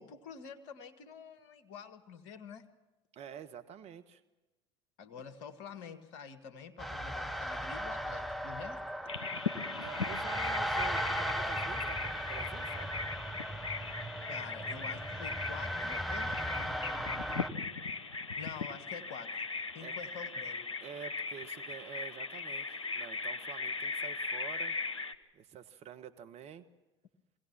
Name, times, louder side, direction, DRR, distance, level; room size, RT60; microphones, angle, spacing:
voice 1, 0.0-2.6 5.0-8.8 14.2-17.1 18.4-19.4 19.7-20.7, left 6 dB, 60° left, 8 dB, 1.5 m, -47 dB
voice 2, 3.1-4.2 9.8-12.9 19.8-19.9 20.8-24.8 25.3-26.7, right 8 dB, 45° right, 9 dB, 1.2 m, -48 dB
sound 1, 6.8-17.5, equal, ahead, 1.0 m, -37 dB
Bird vocalization bird call bird song, 9.1-25.1, left 4 dB, 90° left, 0.8 m, -39 dB
23.0 x 17.0 x 7.3 m, 1.1 s
figure-of-eight pair, 70°, 16 cm